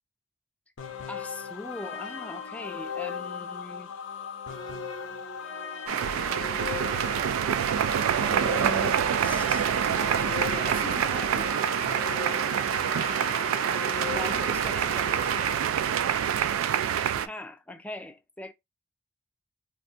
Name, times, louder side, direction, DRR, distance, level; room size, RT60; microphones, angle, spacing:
sound 1, 0.8-15.6, left 6 dB, 65° left, 0.6 m, -37 dB
voice 1, 1.1-3.9 8.1-11.5 14.1-15.2 17.2-18.5, left 1 dB, 5° left, 0.4 m, -40 dB
sound 2, 5.9-17.3, right 9 dB, 85° right, 0.3 m, -26 dB
3.3 x 2.4 x 2.7 m
head